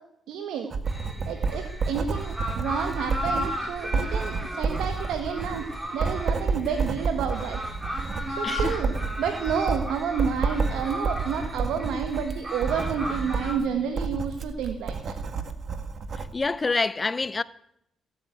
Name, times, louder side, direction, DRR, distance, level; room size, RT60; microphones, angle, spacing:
voice 1, 0.3-0.7 1.3-5.7 5.9-7.6 8.3-15.1, right 7 dB, 85° right, 1.5 m, -30 dB
Writing, 0.7-16.3, right 4 dB, 50° right, 1.9 m, -30 dB
sound 1, 0.9-13.5, equal, 15° right, 4.5 m, -35 dB
voice 2, 8.4-8.8 16.3-17.4, left 3 dB, 25° left, 0.6 m, -26 dB
17.0 x 8.5 x 9.1 m
cardioid pair, 90°, 0 cm